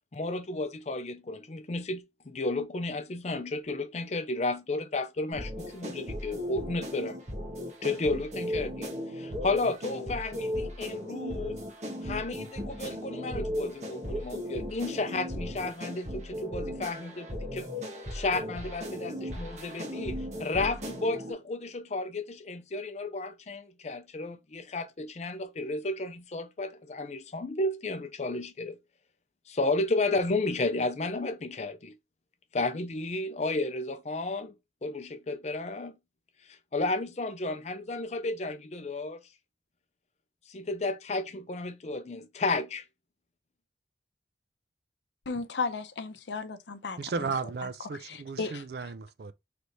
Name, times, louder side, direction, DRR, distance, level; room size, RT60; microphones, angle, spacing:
voice 1, 0.1-7.2 7.8-11.6 12.0-17.7 18.1-28.8 29.5-32.0 32.5-34.5 34.8-35.9 36.7-39.2 40.5-42.8, left 2 dB, 40° left, 0.5 m, -32 dB
sound 1, 5.3-21.3, equal, 40° right, 1.3 m, -37 dB
voice 2, 45.3-47.0 48.0-48.6, left 4 dB, 80° left, 0.6 m, -34 dB
voice 3, 47.0-49.3, right 4 dB, 60° right, 0.4 m, -35 dB
3.3 x 3.1 x 4.0 m
head